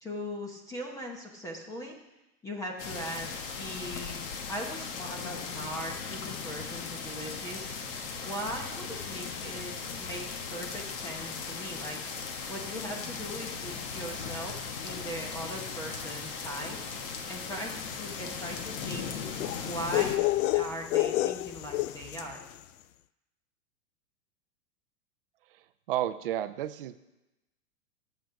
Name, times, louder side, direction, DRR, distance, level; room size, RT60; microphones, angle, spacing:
voice 1, 0.0-2.0 2.4-4.2 4.5-7.7 8.2-12.0 12.5-16.8 17.3-19.2 19.6-22.4, equal, 10° left, 1 dB, 0.9 m, -39 dB
sound 1, 2.8-20.2, left 5 dB, 40° left, 1.2 m, -38 dB
sound 2, 9.3-18.4, right 8 dB, 20° right, 1.2 m, -57 dB
sound 3, 17.9-22.4, left 16 dB, 75° left, 0.5 m, -30 dB
voice 2, 25.5-27.0, right 12 dB, 40° right, 13 dB, 0.5 m, -32 dB
12.5 x 7.8 x 5.7 m, 0.97 s
supercardioid pair, 165°, 43 cm